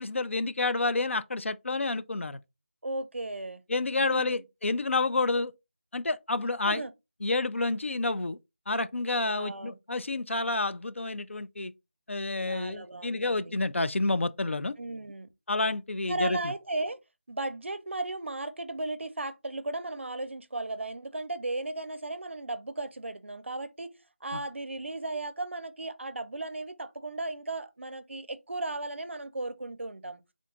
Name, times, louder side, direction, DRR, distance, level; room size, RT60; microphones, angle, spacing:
voice 1, 0.0-2.4 3.7-5.5 5.9-6.8 7.2-8.4 8.7-11.7 12.1-14.7 15.5-16.4 24.3-24.4, left 3 dB, 85° left, 0.4 m, -29 dB
voice 2, 2.8-3.6 4.0-4.4 6.3-6.9 9.2-9.8 12.5-13.5 14.8-15.3 16.0-17.0 17.3-30.2, right 2 dB, 70° right, 0.5 m, -36 dB
3.7 x 2.3 x 3.6 m
figure-of-eight pair, 180°, 7 cm